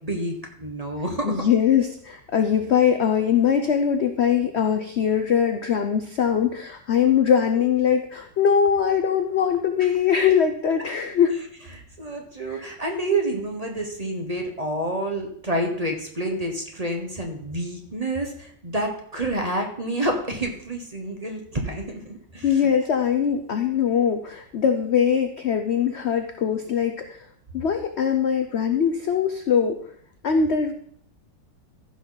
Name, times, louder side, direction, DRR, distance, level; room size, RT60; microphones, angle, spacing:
voice 1, 0.0-1.4 9.8-9.9 12.0-22.6, right 1 dB, 25° right, 2 dB, 1.1 m, -28 dB
voice 2, 1.2-11.3 12.5-12.6 22.4-27.2 27.5-29.8 30.2-30.7, left 7 dB, 70° left, 6 dB, 0.6 m, -22 dB
14.5 x 6.1 x 4.0 m, 0.63 s
omnidirectional pair, 2.0 m